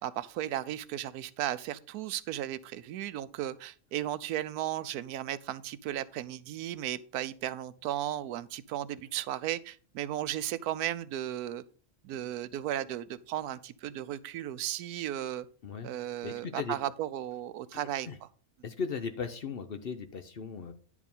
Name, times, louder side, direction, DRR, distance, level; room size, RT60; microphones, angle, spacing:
voice 1, 0.0-11.6 12.0-15.5 15.8-18.1, right 12 dB, 85° right, 1.1 m, -35 dB
voice 2, 16.2-16.7 17.7-18.2 18.6-20.7, left 5 dB, 50° left, 0.8 m, -37 dB
10.0 x 4.9 x 5.3 m
omnidirectional pair, 1.6 m